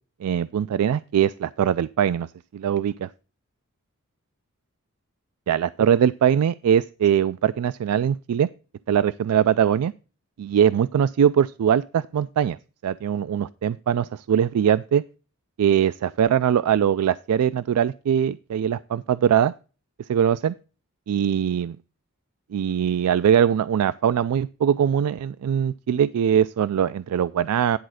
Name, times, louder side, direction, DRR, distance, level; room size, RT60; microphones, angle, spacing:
voice 1, 0.2-3.1 5.5-8.5 8.9-9.9 10.4-12.6 12.8-15.0 15.6-19.5 20.1-20.6 21.1-21.8 22.5-27.8, right 9 dB, 90° right, 16 dB, 0.3 m, -21 dB
10.5 x 4.3 x 6.2 m, 0.34 s
head